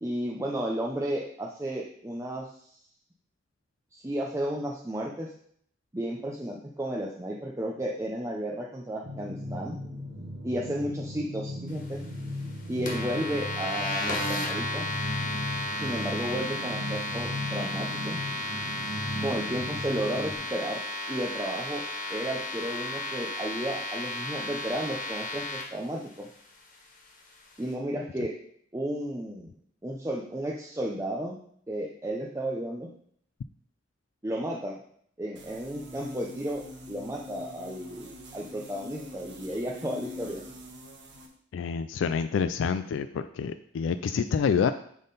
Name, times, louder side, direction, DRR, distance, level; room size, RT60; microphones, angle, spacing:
voice 1, 0.0-2.8 3.9-5.3 5.9-9.8 10.4-12.0 12.7-14.9 15.8-18.2 19.2-20.8 21.1-21.8 22.1-26.3 27.6-28.3 28.7-29.5 29.8-31.4 31.7-32.9 34.2-34.8 35.2-36.6 36.9-40.4, right 1 dB, 15° right, -2 dB, 0.6 m, -33 dB
sound 1, 9.0-20.4, left 1 dB, 40° right, 1.8 m, -36 dB
sound 2, 12.8-25.6, left 1 dB, 45° left, 1.6 m, -34 dB
sound 3, 35.4-41.3, left 2 dB, 65° right, 1.2 m, -44 dB
voice 2, 41.5-44.7, left 6 dB, 85° left, 10 dB, 0.3 m, -27 dB
10.5 x 3.7 x 4.0 m, 0.64 s
head